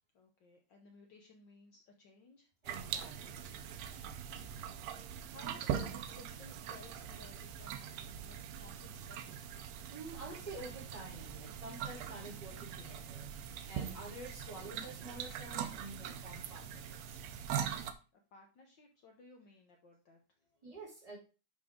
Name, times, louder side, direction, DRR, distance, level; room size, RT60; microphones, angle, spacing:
voice 1, 0.1-2.5 4.3-9.4 12.5-12.6 18.1-20.6, left 3 dB, 80° left, 2 dB, 1.0 m, -59 dB
voice 2, 2.6-3.4 3.7-3.8 9.9-17.2 20.6-21.2, right 2 dB, 10° right, -3 dB, 2.7 m, -49 dB
sound 1, 2.6-17.9, right 9 dB, 75° right, 1.8 m, -42 dB
11.0 x 4.4 x 3.6 m, 0.33 s
omnidirectional pair, 3.3 m